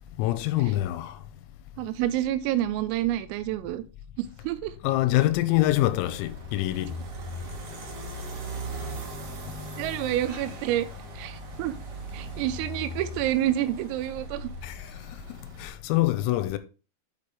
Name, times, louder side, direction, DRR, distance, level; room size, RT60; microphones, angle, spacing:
voice 1, 0.2-1.2 4.8-6.9 14.6-14.8 15.6-16.6, left 16 dB, 90° left, 3.5 m, -25 dB
voice 2, 1.8-3.8 4.2-4.7 9.8-10.9 11.2-11.7 12.1-14.5, right 13 dB, 85° right, 3.3 m, -28 dB
sound 1, 5.5-15.7, right 1 dB, 50° right, 2.4 m, -39 dB
8.6 x 5.1 x 4.7 m
omnidirectional pair, 6.0 m